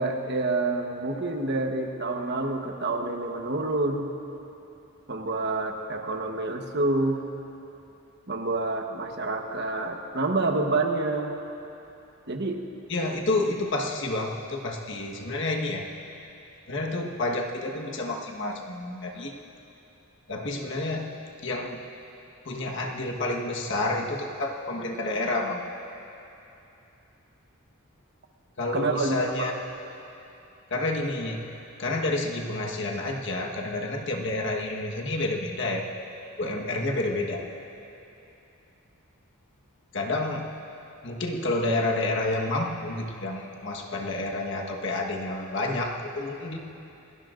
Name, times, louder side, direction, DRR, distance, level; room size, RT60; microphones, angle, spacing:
voice 1, 0.0-4.1 5.1-7.2 8.3-11.3 12.3-12.6 28.7-29.5, right 2 dB, 50° right, 3 dB, 1.1 m, -28 dB
voice 2, 12.9-15.8 16.7-19.4 20.3-21.1 21.4-21.8 22.4-25.6 28.6-29.5 30.7-31.4 31.8-35.9 36.4-37.4 39.9-40.5 41.0-46.6, left 2 dB, 55° left, 0 dB, 1.4 m, -29 dB
28.5 x 19.0 x 2.6 m, 2.9 s
head